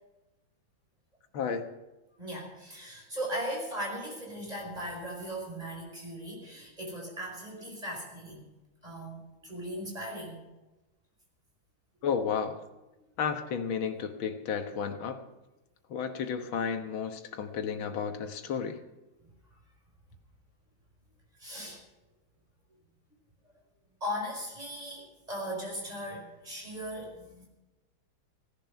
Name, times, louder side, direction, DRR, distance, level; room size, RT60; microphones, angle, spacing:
voice 1, 1.3-1.7 12.0-12.6 13.2-15.2 15.9-18.8, left 6 dB, 80° left, 7 dB, 2.1 m, -32 dB
voice 2, 2.2-8.4 8.8-10.4 21.4-21.8 24.0-27.5, equal, 20° right, -1 dB, 5.0 m, -38 dB
17.5 x 11.0 x 5.7 m, 1.0 s
omnidirectional pair, 2.2 m